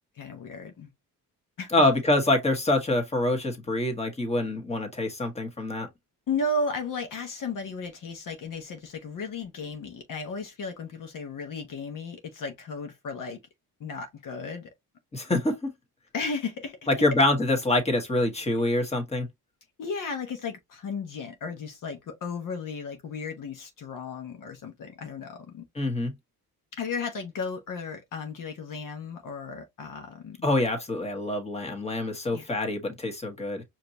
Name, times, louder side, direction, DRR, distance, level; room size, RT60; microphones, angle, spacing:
voice 1, 0.2-0.9 1.6-1.9 6.3-13.4 13.8-14.7 16.1-16.8 19.8-25.6 26.7-30.5 32.3-32.5, left 3 dB, 60° left, 1.2 m, -34 dB
voice 2, 1.7-5.9 15.1-15.7 17.0-19.3 25.7-26.1 30.4-33.6, left 2 dB, 15° left, 1.6 m, -25 dB
5.0 x 2.9 x 2.8 m
cardioid pair, 110°, 36 cm